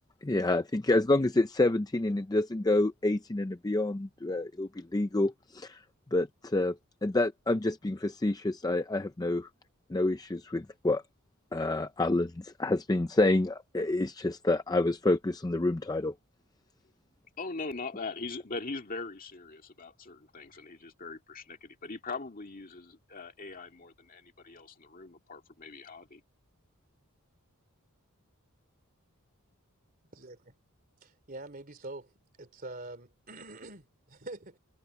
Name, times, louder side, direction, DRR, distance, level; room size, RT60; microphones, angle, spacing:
voice 1, 0.2-5.8 6.1-6.8 7.0-9.5 9.9-11.0 11.5-16.1, left 2 dB, 15° left, 0.4 m, -28 dB
voice 2, 17.4-26.2, left 3 dB, 40° left, 2.1 m, -41 dB
voice 3, 30.1-30.5 31.0-32.1 32.4-34.6, right 2 dB, 40° right, 3.0 m, -45 dB
head